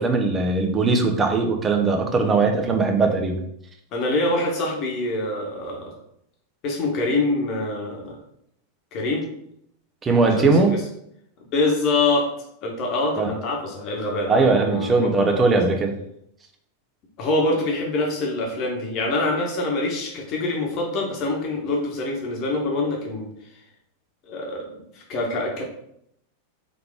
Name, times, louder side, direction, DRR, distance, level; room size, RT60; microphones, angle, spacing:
voice 1, 0.0-3.4 10.0-10.8 13.2-13.3 14.3-15.9, right 3 dB, 20° right, 3 dB, 0.8 m, -20 dB
voice 2, 3.9-5.9 6.6-8.2 8.9-9.3 10.3-10.8 11.4-12.3 12.6-15.4 17.2-23.3 24.3-25.6, left 2 dB, 40° left, 0 dB, 1.3 m, -25 dB
3.8 x 3.4 x 3.6 m, 0.74 s
figure-of-eight pair, 90°, 0 cm